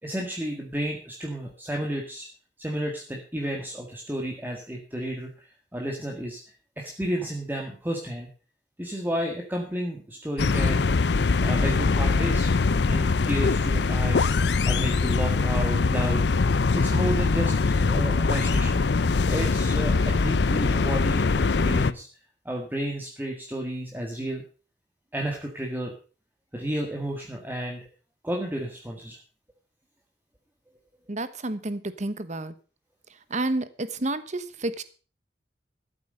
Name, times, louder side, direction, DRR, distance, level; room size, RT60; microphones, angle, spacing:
voice 1, 0.0-2.3 2.6-6.4 6.8-8.3 8.8-10.8 11.4-12.5 12.8-16.2 16.7-18.8 19.3-22.1 22.5-24.4 25.1-25.9 26.5-27.8 28.2-29.2, right 1 dB, 10° right, 0 dB, 1.8 m, -32 dB
Trees Rubbing Together Omnis, 10.4-21.9, left 4 dB, 65° left, 0.6 m, -22 dB
voice 2, 31.1-32.5 33.1-34.8, right 2 dB, 40° right, 13 dB, 1.1 m, -30 dB
13.5 x 8.2 x 6.6 m, 0.37 s
head